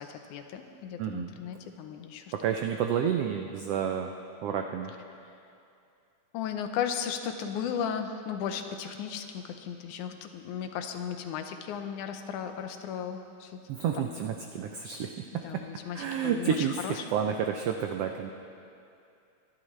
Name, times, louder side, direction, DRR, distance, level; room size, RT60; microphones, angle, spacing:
voice 1, 0.0-2.3 6.3-13.6 14.0-14.2 15.4-17.1, left 8 dB, 85° left, 7 dB, 2.3 m, -35 dB
voice 2, 1.0-1.3 2.3-4.1 4.4-4.9 13.7-15.6 15.9-18.3, right 8 dB, 85° right, 4 dB, 1.3 m, -30 dB
24.5 x 11.5 x 3.2 m, 2.6 s
omnidirectional pair, 3.4 m